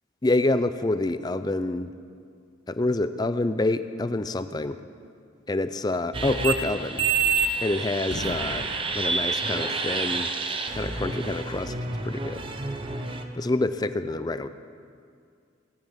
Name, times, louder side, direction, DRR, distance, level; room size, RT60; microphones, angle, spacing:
voice 1, 0.2-1.9 2.7-4.8 5.5-7.1 7.6-8.7 8.9-10.3 10.7-11.7 12.0-12.5 13.3-14.5, left 2 dB, 20° left, 12 dB, 0.4 m, -27 dB
coca fire cola, 6.1-13.2, right 5 dB, 25° right, 0.7 m, -28 dB
sound 1, 7.3-7.7 8.0-10.1, left 1 dB, 60° left, 0.9 m, -40 dB
18.0 x 9.6 x 5.3 m, 2.3 s
head